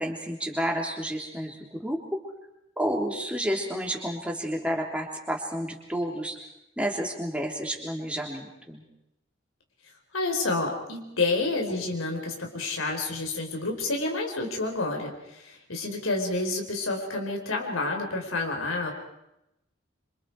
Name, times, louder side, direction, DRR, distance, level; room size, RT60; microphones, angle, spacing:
voice 1, 0.0-2.0 2.8-6.4 6.8-8.8, equal, 5° right, 0 dB, 3.4 m, -30 dB
voice 2, 10.1-18.9, left 3 dB, 90° left, 2 dB, 4.7 m, -29 dB
27.0 x 26.5 x 4.9 m, 0.86 s
head